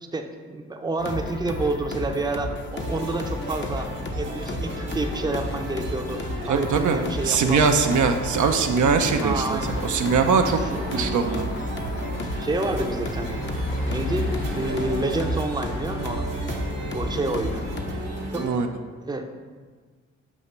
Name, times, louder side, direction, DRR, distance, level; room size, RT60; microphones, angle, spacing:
voice 1, 0.1-7.8 9.2-9.8 10.7-10.8 12.2-13.4 13.8-16.3 16.9-17.6 18.3-18.6 19.0-19.3, right 2 dB, 15° right, 4 dB, 0.7 m, -29 dB
sound 1, 1.0-17.9, left 1 dB, 35° left, 0.8 m, -33 dB
sound 2, 2.7-18.4, right 1 dB, 90° right, 1.0 m, -36 dB
sound 3, 3.5-18.3, equal, 55° left, 1.8 m, -35 dB
voice 2, 6.5-7.0 7.3-10.6 10.9-11.4 18.4-18.7, right 5 dB, 65° right, 5 dB, 0.6 m, -21 dB
7.2 x 2.8 x 5.5 m, 1.5 s
supercardioid pair, 50°, 33 cm